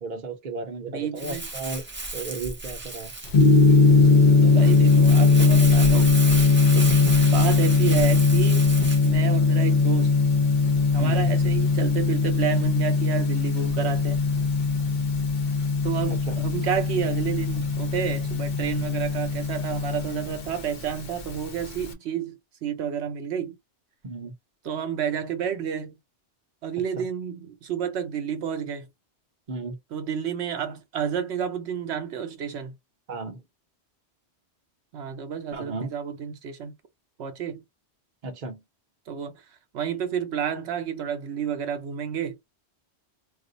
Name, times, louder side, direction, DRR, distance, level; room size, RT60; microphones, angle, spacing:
voice 1, 0.0-1.8 2.1-3.1 11.0-11.3 16.1-16.4 24.0-24.3 27.0-27.1 29.5-29.8 33.1-33.4 35.5-35.9 38.2-38.6, right 3 dB, 50° right, 0.8 m, -34 dB
voice 2, 0.9-1.5 4.4-6.1 6.7-6.9 7.3-8.7 9.0-10.1 10.9-14.2 15.8-22.3 22.6-23.6 24.6-25.9 26.6-28.9 29.9-32.7 34.9-36.7 37.2-37.6 39.1-39.3 39.7-42.3, right 8 dB, 75° right, 0.9 m, -30 dB
Crumpling crinkling, 1.2-9.1, right 2 dB, 15° right, 0.4 m, -33 dB
Gong, 3.3-21.9, left 4 dB, 50° left, 0.8 m, -20 dB
2.4 x 2.4 x 3.8 m
omnidirectional pair, 1.1 m